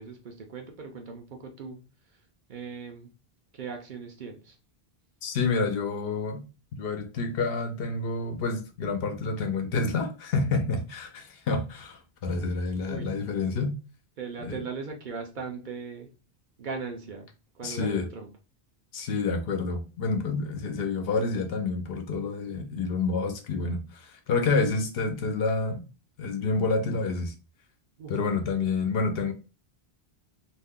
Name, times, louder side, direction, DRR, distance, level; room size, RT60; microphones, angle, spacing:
voice 1, 0.0-1.8 2.5-3.1 3.5-4.6 12.9-13.1 14.2-16.1 16.6-17.3 17.6-18.3 28.0-28.1, right 5 dB, 55° right, 0.6 m, -38 dB
voice 2, 5.2-6.4 6.7-13.8 14.4-14.6 17.6-18.1 18.9-25.8 26.2-27.3 28.1-29.3, left 4 dB, 70° left, 0.8 m, -28 dB
2.5 x 2.1 x 3.5 m
omnidirectional pair, 1.0 m